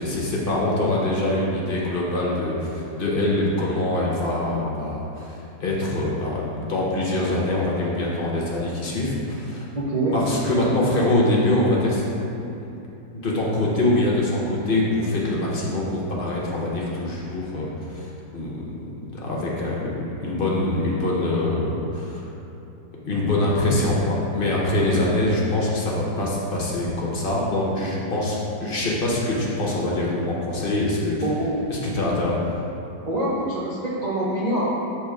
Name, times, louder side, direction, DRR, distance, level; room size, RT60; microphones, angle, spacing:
voice 1, 0.0-9.7 10.1-12.1 12.4-12.5 13.1-22.2 23.0-31.2 31.7-32.4, left 1 dB, 45° left, -4 dB, 0.7 m, -24 dB
voice 2, 9.7-10.1 31.2-31.5 33.1-34.7, right 1 dB, 80° right, -7 dB, 0.3 m, -25 dB
7.0 x 3.1 x 4.8 m, 2.8 s
omnidirectional pair, 1.9 m